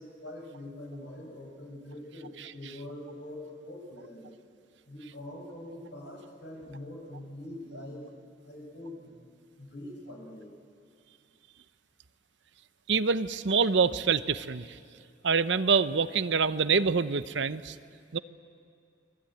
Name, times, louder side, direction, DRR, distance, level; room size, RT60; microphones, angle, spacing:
voice 1, 0.0-4.3 4.8-8.0 8.4-9.2 9.6-10.5, left 1 dB, 70° left, 0 dB, 6.7 m, -44 dB
voice 2, 12.9-14.7 15.2-17.8 18.1-18.2, right 5 dB, 75° right, 13 dB, 0.8 m, -26 dB
29.0 x 21.5 x 8.9 m, 2.4 s
head